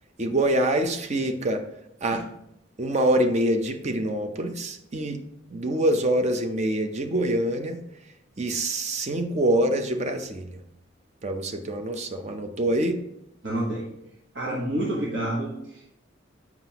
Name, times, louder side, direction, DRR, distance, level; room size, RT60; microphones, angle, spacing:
voice 1, 0.2-1.6 2.0-2.2 2.8-5.2 5.5-7.8 8.4-10.6 11.2-13.0, right 1 dB, 35° right, 6 dB, 0.6 m, -25 dB
voice 2, 13.4-13.9 14.3-15.9, right 1 dB, 65° right, -5 dB, 1.2 m, -29 dB
7.4 x 5.9 x 2.9 m, 0.81 s
head